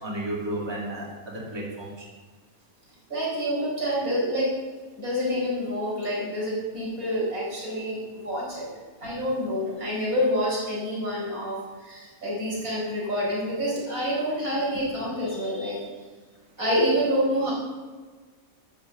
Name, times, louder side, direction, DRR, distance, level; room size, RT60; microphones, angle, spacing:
voice 1, 0.0-2.1, right 1 dB, 20° right, -4 dB, 2.4 m, -33 dB
voice 2, 3.1-4.6 5.0-8.7 9.0-15.9 16.6-17.5, equal, 85° right, -5 dB, 5.3 m, -27 dB
12.5 x 7.6 x 7.0 m, 1.4 s
omnidirectional pair, 1.5 m